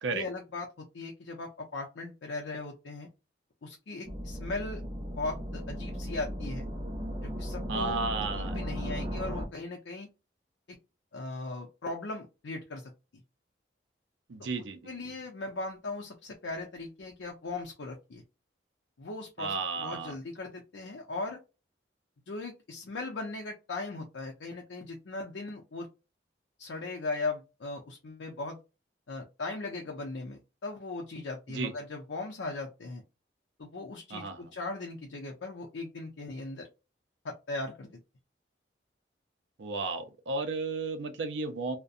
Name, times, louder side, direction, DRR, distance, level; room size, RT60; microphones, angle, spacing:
voice 1, 0.1-3.1 3.6-4.8 5.2-6.6 7.2-8.0 8.3-10.1 10.7-10.8 11.1-12.9 14.9-18.2 19.0-19.5 19.8-21.4 22.3-25.9 26.6-28.6 29.1-33.0 33.6-36.7 37.2-38.0, left 3 dB, 80° left, 0.5 m, -38 dB
sound 1, 4.0-9.5, equal, 25° right, 0.5 m, -36 dB
voice 2, 7.7-8.6 14.3-15.1 19.4-20.1 31.5-31.7 34.1-34.5 39.6-41.8, right 3 dB, 75° right, 0.5 m, -33 dB
2.6 x 2.1 x 2.4 m
head